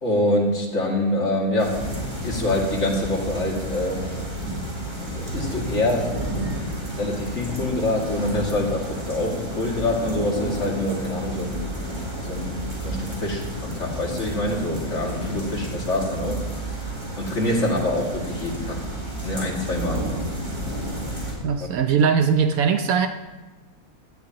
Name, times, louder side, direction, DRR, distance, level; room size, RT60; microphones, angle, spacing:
voice 1, 0.0-2.0 2.2-4.0 5.1-11.6 12.3-16.4 17.2-18.8 19.2-20.1, left 1 dB, 55° left, -2 dB, 2.6 m, -25 dB
sound 1, 1.6-21.3, right 1 dB, 55° right, 4.4 m, -31 dB
voice 2, 21.4-23.1, right 6 dB, 75° right, 7 dB, 1.1 m, -20 dB
17.0 x 13.0 x 3.0 m, 1.2 s
omnidirectional pair, 1.5 m